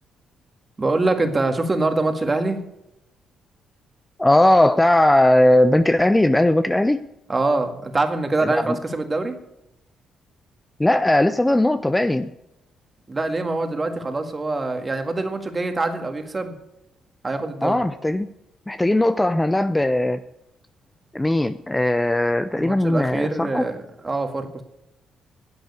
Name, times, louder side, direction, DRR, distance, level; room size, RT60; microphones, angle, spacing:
voice 1, 0.8-2.6 7.3-9.4 13.1-16.5 17.2-17.8 22.5-24.6, right 2 dB, 25° right, 6 dB, 1.9 m, -24 dB
voice 2, 4.2-7.0 8.4-8.8 10.8-12.3 17.6-18.3 18.7-20.2 21.1-23.7, left 1 dB, 10° left, 11 dB, 0.5 m, -18 dB
11.0 x 7.9 x 8.4 m, 0.87 s
cardioid pair, 90°, 0 cm